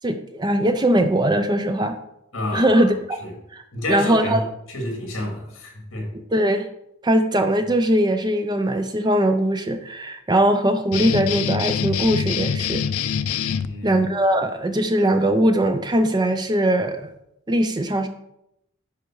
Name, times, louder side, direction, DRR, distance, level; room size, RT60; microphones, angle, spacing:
voice 1, 0.0-2.0 2.5-3.2 3.5-3.6 3.9-4.5 6.3-6.7 7.0-12.8 13.8-17.1 17.5-18.1, right 1 dB, 20° right, 8 dB, 0.5 m, -20 dB
voice 2, 2.3-2.9 3.2-3.3 3.7-6.1 13.6-14.0, left 1 dB, 60° left, 1 dB, 2.5 m, -29 dB
sound 1, 10.9-13.7, left 7 dB, 85° left, 0.5 m, -25 dB
10.0 x 5.0 x 4.7 m, 0.81 s
head